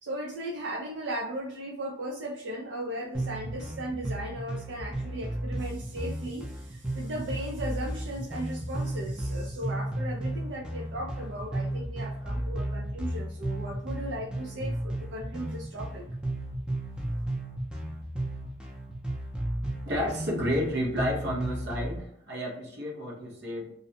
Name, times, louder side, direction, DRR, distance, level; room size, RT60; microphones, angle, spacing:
voice 1, 0.0-16.0, right 1 dB, 90° right, -1 dB, 0.4 m, -37 dB
sound 1, 3.1-22.0, right 1 dB, 5° right, 0.4 m, -34 dB
voice 2, 19.8-23.7, equal, 65° right, -2 dB, 0.9 m, -31 dB
2.5 x 2.1 x 2.7 m, 0.67 s
head